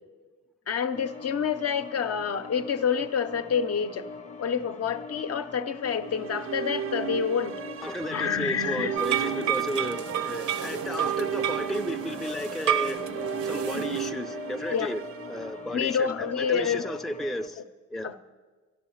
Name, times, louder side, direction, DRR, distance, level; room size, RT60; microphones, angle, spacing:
voice 1, 0.7-4.1 4.4-7.6 8.0-9.0 14.7-14.9 15.7-16.9 18.0-18.2, left 7 dB, 55° left, 0.8 m, -28 dB
sound 1, 0.9-17.5, left 4 dB, 25° left, 0.8 m, -42 dB
sound 2, 6.0-16.2, right 9 dB, 50° right, 0.5 m, -35 dB
voice 2, 7.8-13.1 13.4-15.0 15.3-17.6 17.9-18.1, equal, ahead, 0.5 m, -34 dB
sound 3, 9.0-14.1, right 10 dB, 75° right, 1.0 m, -30 dB
12.0 x 11.5 x 7.2 m
cardioid pair, 90°, 30 cm